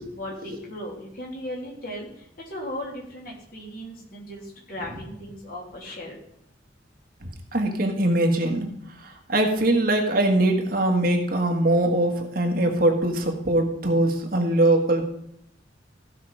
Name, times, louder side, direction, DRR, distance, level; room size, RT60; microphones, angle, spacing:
voice 1, 0.0-6.2, equal, 50° left, -2 dB, 3.2 m, -37 dB
voice 2, 7.5-8.7 9.3-15.1, right 1 dB, 50° right, 3 dB, 1.6 m, -22 dB
15.0 x 5.7 x 4.9 m, 0.73 s
head